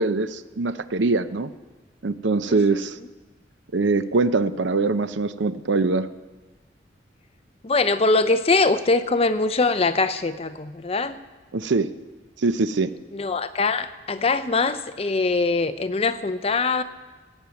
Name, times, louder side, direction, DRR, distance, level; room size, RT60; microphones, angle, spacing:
voice 1, 0.0-1.5 2.0-3.0 3.7-6.1 11.5-11.9 12.4-12.9, right 3 dB, 70° right, 13 dB, 0.7 m, -23 dB
voice 2, 2.5-2.8 7.6-11.2 13.1-16.8, left 3 dB, 30° left, 11 dB, 0.6 m, -22 dB
17.5 x 9.2 x 7.0 m, 1.3 s
head